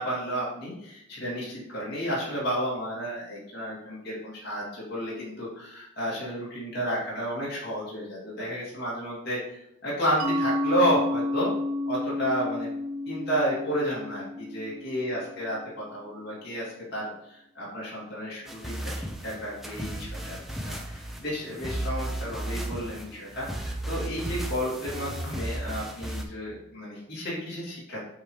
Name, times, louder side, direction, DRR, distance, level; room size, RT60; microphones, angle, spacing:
voice 1, 0.0-11.5 11.8-12.7 13.1-28.0, equal, 50° left, -6 dB, 2.7 m, -31 dB
Mallet percussion, 10.2-15.6, left 1 dB, 85° right, 0.9 m, -31 dB
sound 1, 18.5-26.2, right 1 dB, ahead, 0.6 m, -34 dB
8.0 x 3.1 x 4.8 m, 0.79 s
head